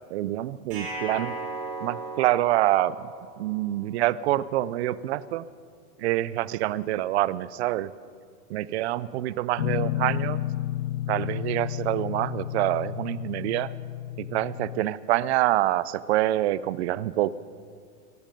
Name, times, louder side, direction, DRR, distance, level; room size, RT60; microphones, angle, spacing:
voice 1, 0.1-1.3 1.8-3.1 3.4-5.5 6.0-7.9 8.5-10.4 11.1-13.7 14.2-17.3, right 15 dB, 50° right, 18 dB, 0.5 m, -26 dB
sound 1, 0.7-3.8, right 2 dB, 30° right, 4.2 m, -36 dB
Guitar, 9.6-14.8, left 14 dB, 80° left, 0.7 m, -31 dB
17.5 x 15.0 x 5.2 m, 2.2 s
supercardioid pair, 160°, 44 cm